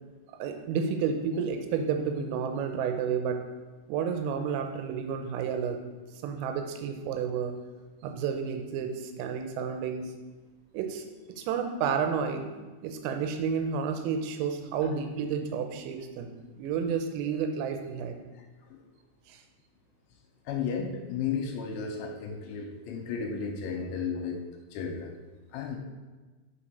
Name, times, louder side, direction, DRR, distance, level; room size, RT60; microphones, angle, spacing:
voice 1, 0.4-3.4 3.9-5.8 6.1-7.5 8.0-10.1 10.7-12.5 12.8-18.2 19.3-19.4, right 6 dB, 85° right, 6 dB, 3.3 m, -31 dB
voice 2, 18.3-18.8 20.5-24.4 24.7-25.1 25.5-25.8, left 6 dB, 85° left, 3 dB, 2.9 m, -34 dB
8.5 x 4.7 x 5.1 m, 1.3 s
omnidirectional pair, 5.9 m